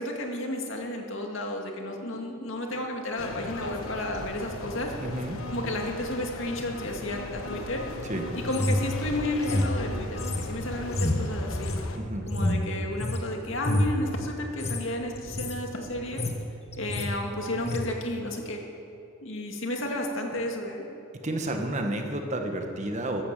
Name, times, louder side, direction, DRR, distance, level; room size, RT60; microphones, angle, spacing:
voice 1, 0.0-4.9 5.5-7.9 8.3-11.8 12.3-16.3 16.8-18.6 19.2-20.8, left 1 dB, 65° left, 2 dB, 2.2 m, -32 dB
sound 1, 3.2-12.0, left 2 dB, 80° left, 1.2 m, -37 dB
voice 2, 5.0-5.4 8.1-8.2 12.0-12.3 21.2-23.2, right 1 dB, 35° right, 4 dB, 1.4 m, -31 dB
sound 2, 8.5-13.2 13.6-14.0 14.5-14.8 15.1-15.6 15.9-16.5 16.7-17.1 17.6-17.8, left 1 dB, 30° left, 1.2 m, -28 dB
14.5 x 11.5 x 7.4 m, 2.7 s
head